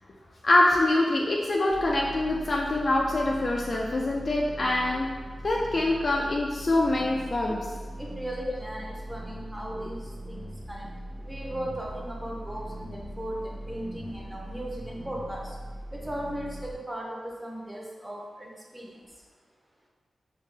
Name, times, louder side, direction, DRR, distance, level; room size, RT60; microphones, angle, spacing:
voice 1, 0.4-5.1 5.4-7.6, left 2 dB, 50° left, -2 dB, 0.3 m, -24 dB
sound 1, 1.7-16.7, right 1 dB, 50° right, 0.9 m, -40 dB
voice 2, 8.0-10.9 11.2-15.6 15.9-18.9, right 1 dB, 15° right, -2 dB, 0.7 m, -37 dB
2.8 x 2.8 x 3.7 m, 1.4 s
cardioid pair, 70°, 0 cm